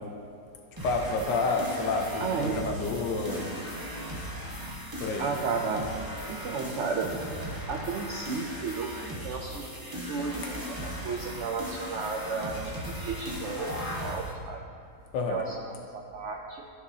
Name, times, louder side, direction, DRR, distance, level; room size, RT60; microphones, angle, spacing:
voice 1, 0.8-3.5 5.0-5.3 15.1-15.4, left 3 dB, 85° left, 2 dB, 1.5 m, -29 dB
sound 1, 0.8-14.3, equal, 15° right, 0.8 m, -37 dB
voice 2, 2.2-2.6 5.2-5.9 6.3-7.1 7.7-8.9 9.2-9.7 10.1-12.6 13.0-14.6 15.3-15.7 16.1-16.6, right 5 dB, 75° right, 1 dB, 0.6 m, -33 dB
14.0 x 4.8 x 2.8 m, 2.5 s
omnidirectional pair, 1.8 m